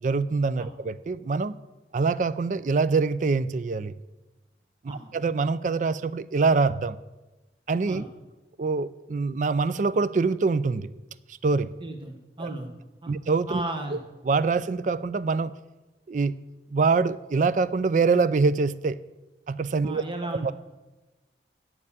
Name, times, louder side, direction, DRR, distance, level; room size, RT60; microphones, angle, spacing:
voice 1, 0.0-1.6 1.9-3.9 5.1-7.0 7.7-8.0 8.6-10.9 11.4-11.7 12.4-12.5 13.1-13.6 13.9-14.0 14.3-15.5 16.1-16.4 16.7-19.0 19.5-20.0 20.4-20.5, right 4 dB, 45° right, 16 dB, 0.3 m, -24 dB
voice 2, 11.8-12.7 13.0-13.1 13.5-14.0 19.8-20.5, right 2 dB, 25° right, 4 dB, 0.9 m, -35 dB
8.7 x 6.7 x 8.5 m, 1.1 s
head